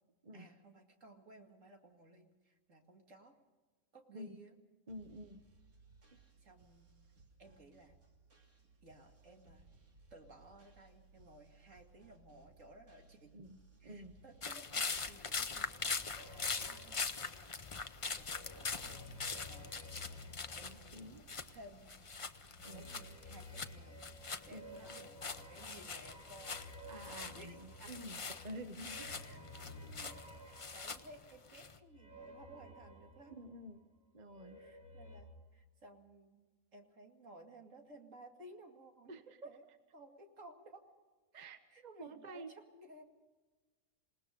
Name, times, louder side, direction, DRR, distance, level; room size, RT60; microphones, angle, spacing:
voice 1, 0.3-3.4 3.9-4.5 6.4-6.9 7.4-8.0 8.8-9.7 10.1-13.3 13.8-17.9 18.1-19.2 19.4-21.9 22.7-26.6 27.3-27.6 29.2-29.4 29.9-33.4 34.6-36.4 36.7-39.6 39.9-40.8 41.3-43.1, right 1 dB, 65° right, 3 dB, 2.8 m, -58 dB
voice 2, 4.9-5.4 13.3-13.6 13.8-14.2 20.6-21.3 22.6-22.9 24.5-25.0 26.9-29.1 33.4-33.8 34.1-34.6 39.1-39.5 41.3-42.5, right 1 dB, 35° right, 8 dB, 1.1 m, -49 dB
sound 1, 4.9-23.2, right 3 dB, 90° right, 3.3 m, -64 dB
sound 2, 14.4-21.6 21.9-31.8, left 4 dB, 30° left, 0.7 m, -43 dB
sound 3, 16.2-17.8 18.1-21.6 22.5-33.9 34.2-35.2, left 1 dB, 5° right, 4.0 m, -54 dB
28.0 x 19.0 x 5.3 m, 1.3 s
omnidirectional pair, 1.5 m